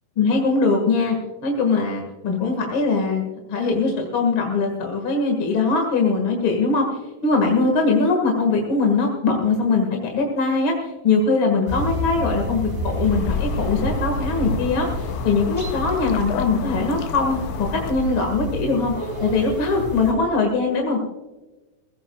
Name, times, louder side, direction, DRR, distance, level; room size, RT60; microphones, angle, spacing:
voice 1, 0.2-1.2 1.4-3.2 3.5-6.9 7.2-18.9 19.2-21.0, left 3 dB, 45° left, 1 dB, 2.2 m, -21 dB
sound 1, 11.7-20.1, equal, 10° right, 4.4 m, -29 dB
sound 2, 12.8-17.9, left 9 dB, 80° left, 2.2 m, -31 dB
22.0 x 16.0 x 2.3 m, 1.1 s
omnidirectional pair, 3.7 m